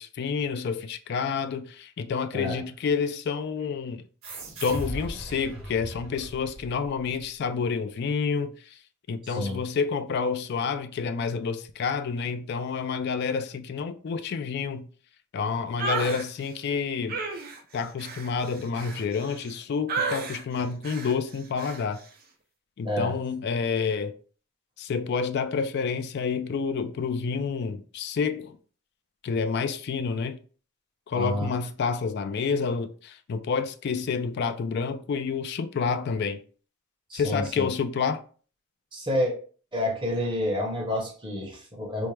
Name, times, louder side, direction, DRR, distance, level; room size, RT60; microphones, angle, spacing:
voice 1, 0.0-4.0 4.6-8.5 9.1-14.9 15.3-17.2 17.7-22.0 22.8-24.1 24.8-28.6 29.2-30.4 31.1-36.4 37.1-38.2, left 5 dB, 50° left, 0.3 m, -29 dB
sound 1, 4.2-7.3, right 1 dB, 80° right, 1.4 m, -38 dB
voice 2, 9.2-9.6 22.8-23.1 31.1-31.5 37.1-37.7 38.9-39.3 39.7-42.1, left 1 dB, 25° right, 1.1 m, -29 dB
sound 2, 15.8-16.3 17.1-19.5 19.9-20.4 20.8-21.2 21.6-21.8, right 4 dB, 45° right, 0.5 m, -32 dB
4.4 x 2.0 x 3.3 m
head